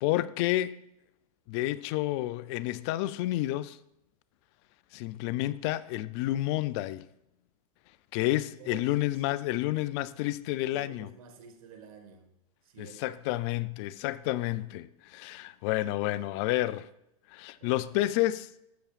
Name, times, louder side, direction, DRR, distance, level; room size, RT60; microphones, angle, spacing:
voice 1, 0.0-0.8 1.5-3.8 4.9-7.0 8.1-11.1 12.8-16.9 17.3-18.5, left 16 dB, 45° left, 0.4 m, -30 dB
voice 2, 8.6-9.8 10.7-12.3 12.6-13.2 17.6-18.1, right 6 dB, 65° right, 1.7 m, -51 dB
12.5 x 6.9 x 2.5 m
hypercardioid pair, 120°, 20 cm